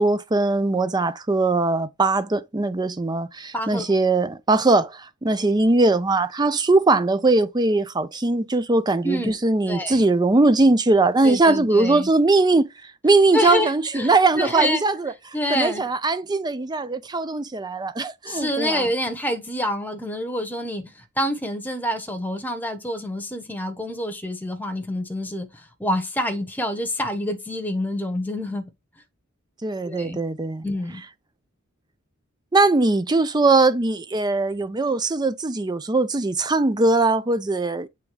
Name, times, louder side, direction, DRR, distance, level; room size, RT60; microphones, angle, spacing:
voice 1, 0.0-12.7 13.0-15.1 15.5-18.9 29.6-30.6 32.5-37.9, right 3 dB, 20° right, 0.5 m, -20 dB
voice 2, 3.5-3.8 9.0-9.4 9.7-10.0 11.2-12.1 13.3-14.8 15.3-15.8 18.3-20.9 21.2-28.7 29.8-30.2 30.6-31.0, left 1 dB, 10° left, 1.1 m, -27 dB
8.4 x 3.5 x 3.3 m
head